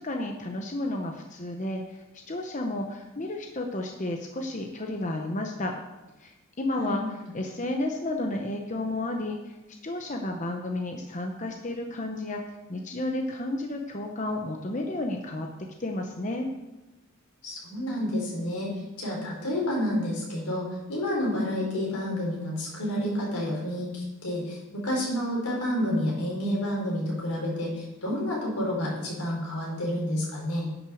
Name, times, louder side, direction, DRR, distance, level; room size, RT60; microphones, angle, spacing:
voice 1, 0.0-5.7 6.2-7.0 7.3-9.6 9.8-12.4 12.7-15.5 15.8-16.5, left 1 dB, 35° left, 2 dB, 0.9 m, -32 dB
voice 2, 6.8-7.3 17.4-30.7, left 1 dB, 90° left, -3 dB, 4.6 m, -29 dB
10.5 x 6.5 x 6.4 m, 1.0 s
head